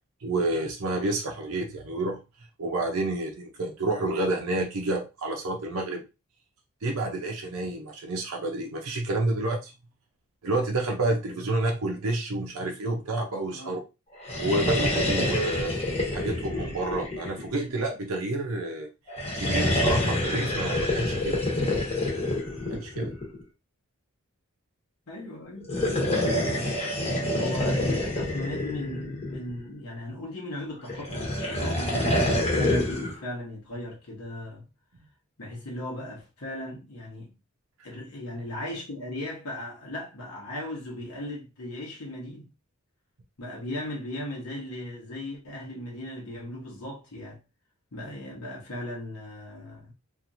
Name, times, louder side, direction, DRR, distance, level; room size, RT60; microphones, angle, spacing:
voice 1, 0.2-2.2 2.6-6.0 6.8-9.7 10.4-13.8 14.4-15.8 16.1-18.9 19.4-21.4 22.7-23.1 26.4-26.5, right 2 dB, 80° right, 0.6 m, -29 dB
sound 1, 14.2-17.8 19.1-23.4 25.6-29.6 30.9-33.2, left 1 dB, 30° left, 0.9 m, -27 dB
voice 2, 25.1-25.7 27.4-34.6 35.4-37.3 37.8-42.5 43.4-47.4 47.9-49.9, left 1 dB, 85° left, 1.0 m, -37 dB
2.9 x 2.5 x 2.5 m
head